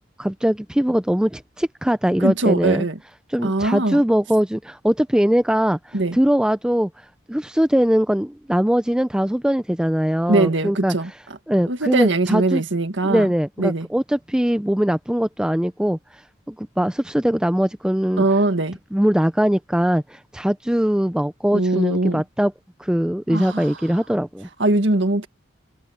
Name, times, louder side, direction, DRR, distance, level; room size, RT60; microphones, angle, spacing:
voice 1, 0.2-2.9 3.3-6.9 7.3-10.9 11.5-12.6 13.0-16.0 16.5-18.2 18.9-22.5 22.8-24.5, equal, 5° right, 0.4 m, -21 dB
voice 2, 2.2-3.0 3.4-4.0 5.9-6.2 10.3-11.1 11.7-13.3 13.6-13.9 18.2-18.8 21.5-22.2 23.3-23.8 24.6-25.3, right 2 dB, 75° right, 1.9 m, -21 dB
head